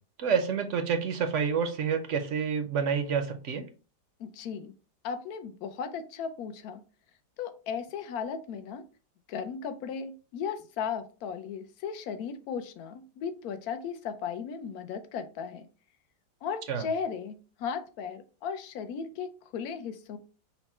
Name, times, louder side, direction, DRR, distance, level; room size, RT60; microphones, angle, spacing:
voice 1, 0.2-3.6 16.7-16.9, right 6 dB, 60° right, 7 dB, 0.8 m, -28 dB
voice 2, 4.2-4.7 5.0-6.8 7.4-8.8 9.3-15.7 16.4-20.2, left 6 dB, 70° left, 9 dB, 1.1 m, -36 dB
5.7 x 2.2 x 4.2 m, 0.36 s
omnidirectional pair, 1.8 m